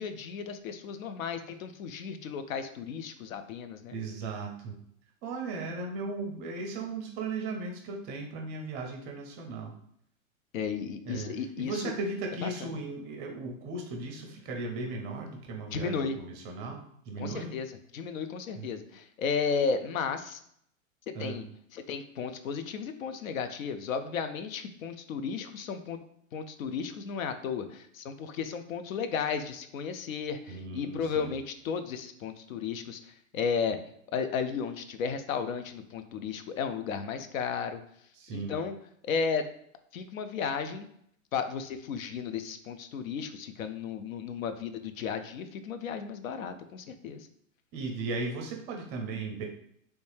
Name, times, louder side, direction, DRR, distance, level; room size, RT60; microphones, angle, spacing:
voice 1, 0.0-3.9 10.5-11.9 12.4-12.7 15.7-16.2 17.2-20.4 21.1-21.5 21.7-26.0 26.3-33.8 34.1-37.8 38.3-38.8 39.0-39.5 39.9-40.9 41.3-47.3, left 6 dB, 75° left, 9 dB, 0.6 m, -34 dB
voice 2, 3.9-4.8 5.2-9.7 11.0-17.5 18.5-18.7 21.1-21.4 30.5-31.4 38.2-38.6 47.7-49.5, right 3 dB, 25° right, 2 dB, 0.5 m, -37 dB
3.2 x 2.6 x 3.3 m, 0.69 s
hypercardioid pair, 125°, 41 cm